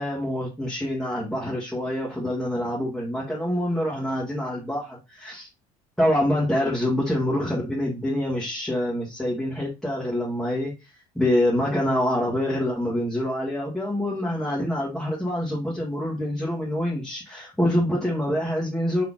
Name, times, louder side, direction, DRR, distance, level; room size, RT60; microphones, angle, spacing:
voice 1, 0.0-5.5 6.0-10.7 11.1-19.0, left 1 dB, ahead, -7 dB, 1.4 m, -26 dB
4.2 x 3.3 x 3.6 m, 0.26 s
cardioid pair, 140°, 14 cm